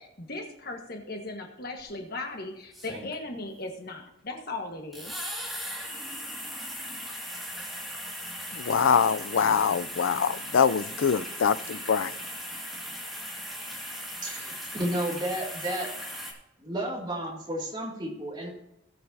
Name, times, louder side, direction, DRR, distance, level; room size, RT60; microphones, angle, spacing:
voice 1, 0.0-5.1, left 2 dB, 50° left, 1.5 m, -37 dB
sound 1, 1.8-1.9 2.7-3.5 4.9-16.3, equal, ahead, 2.2 m, -38 dB
voice 2, 8.5-12.1, left 6 dB, 85° left, 0.4 m, -24 dB
voice 3, 14.2-15.9 16.6-18.5, right 1 dB, 25° right, 2.5 m, -32 dB
19.0 x 7.7 x 2.8 m
head